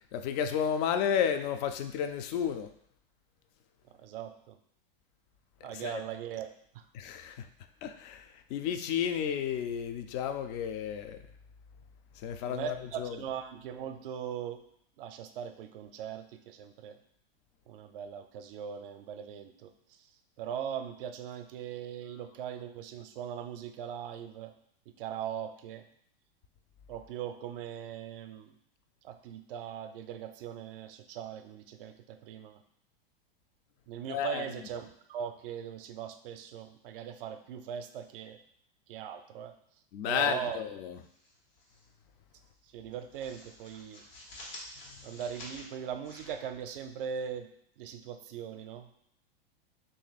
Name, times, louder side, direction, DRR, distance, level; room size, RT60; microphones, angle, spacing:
voice 1, 0.1-2.7 5.7-6.0 6.9-7.5 7.8-11.2 12.2-13.2 34.1-34.5 39.9-41.0 44.9-45.0, left 8 dB, 45° left, 8 dB, 0.4 m, -32 dB
voice 2, 4.0-4.6 5.6-6.5 6.7-6.8 12.4-14.6 15.0-17.0 17.7-20.1 20.4-24.5 24.9-25.8 26.9-28.5 29.0-32.6 33.9-38.4 38.9-39.5 40.0-40.6 42.6-44.0 45.0-47.5 47.8-48.9, right 8 dB, 70° right, 8 dB, 0.5 m, -40 dB
sound 1, 41.0-41.8 42.1-42.3 42.7-47.2, left 1 dB, 80° left, 1.4 m, -50 dB
2.9 x 2.6 x 4.0 m, 0.69 s
hypercardioid pair, 115°, 29 cm